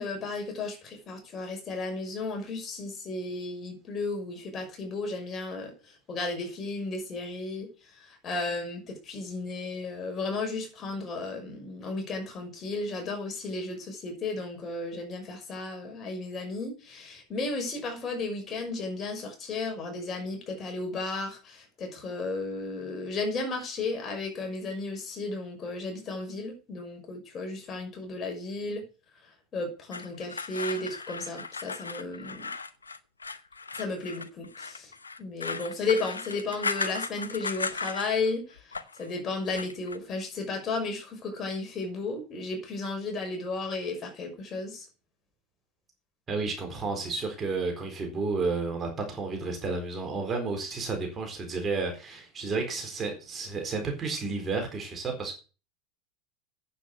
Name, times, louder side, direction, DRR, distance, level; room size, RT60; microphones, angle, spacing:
voice 1, 0.0-28.8 29.2-32.5 33.7-34.9 35.2-44.9, left 3 dB, 35° left, 2 dB, 5.7 m, -34 dB
sound 1, 29.9-38.3 38.6-39.1 39.4-40.0, left 4 dB, 90° left, 0.8 m, -36 dB
voice 2, 46.3-55.4, right 4 dB, 30° right, 3 dB, 4.1 m, -31 dB
9.3 x 8.3 x 6.5 m, 0.34 s
figure-of-eight pair, 80°, 0 cm